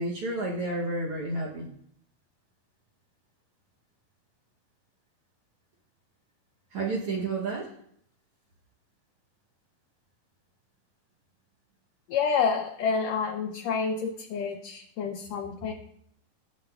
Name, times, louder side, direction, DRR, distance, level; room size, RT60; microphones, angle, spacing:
voice 1, 0.0-1.7 6.7-7.7, right 2 dB, 65° right, -1 dB, 1.5 m, -31 dB
voice 2, 12.1-15.7, left 5 dB, 75° left, 4 dB, 1.6 m, -28 dB
12.5 x 7.0 x 2.3 m, 0.70 s
omnidirectional pair, 3.5 m